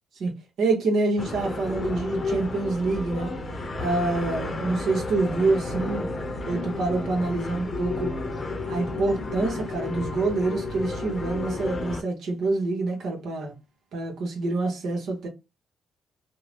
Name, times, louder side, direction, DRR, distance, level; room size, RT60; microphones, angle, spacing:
voice 1, 0.6-3.3 3.8-6.1 6.5-8.1 8.7-13.5 13.9-15.3, right 3 dB, 75° right, 1.0 m, -26 dB
sound 1, 1.2-12.0, left 2 dB, 35° left, 0.6 m, -32 dB
2.7 x 2.2 x 3.2 m
cardioid pair, 90°, 0 cm